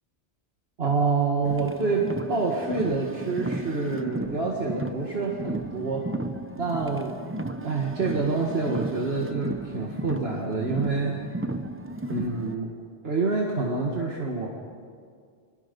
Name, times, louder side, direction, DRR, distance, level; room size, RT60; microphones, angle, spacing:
voice 1, 0.8-6.1 6.6-7.2 7.6-11.2 12.1-12.7 13.0-14.5, right 3 dB, 70° right, -1 dB, 2.1 m, -27 dB
Car, 1.4-12.5, right 2 dB, 15° right, 0.7 m, -34 dB
29.5 x 22.5 x 5.4 m, 2.1 s
omnidirectional pair, 1.1 m